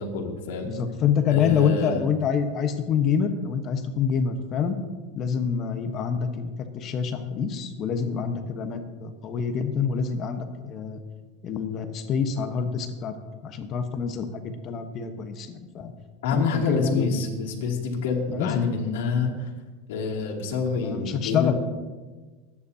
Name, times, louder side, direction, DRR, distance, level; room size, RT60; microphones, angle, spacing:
voice 1, 0.0-0.7 1.3-2.0 16.2-19.5 19.9-21.5, left 5 dB, 80° left, -1 dB, 2.6 m, -27 dB
voice 2, 0.6-4.8 5.2-11.0 11.4-13.1 13.4-15.9 16.3-17.1 18.3-18.7 20.8-21.5, left 7 dB, 35° left, 7 dB, 1.1 m, -26 dB
23.5 x 9.7 x 2.8 m, 1.3 s
supercardioid pair, 135°, 0 cm